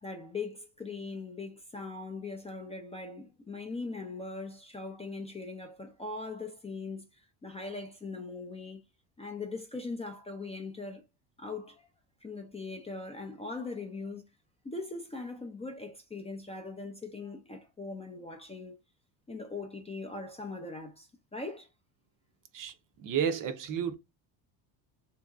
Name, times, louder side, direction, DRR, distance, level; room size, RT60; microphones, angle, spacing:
voice 1, 0.0-8.8 9.2-11.0 11.4-11.9 12.2-14.2 14.6-18.8 19.3-21.7, left 3 dB, 15° left, 0.4 m, -40 dB
voice 2, 23.0-23.9, right 8 dB, 45° right, 0.6 m, -31 dB
2.8 x 2.6 x 2.3 m
supercardioid pair, 90°, 48 cm